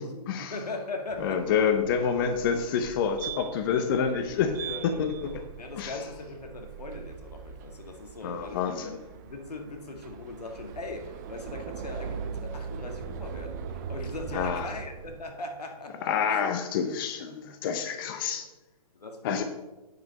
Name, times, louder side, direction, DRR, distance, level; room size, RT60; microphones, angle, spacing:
voice 1, 0.0-1.6 4.6-9.0 9.2-16.0 16.3-16.4 17.8-18.4 18.9-19.4, left 2 dB, 85° left, 4 dB, 2.0 m, -40 dB
sound 1, 1.1-15.2, right 7 dB, 30° right, 0.5 m, -41 dB
voice 2, 1.2-4.5 4.8-5.1 5.8-6.0 8.2-8.9 14.3-14.7 16.0-18.5 19.2-19.4, left 7 dB, 35° left, 8 dB, 0.7 m, -27 dB
9.3 x 5.2 x 5.3 m, 1.1 s
hypercardioid pair, 145°, 20 cm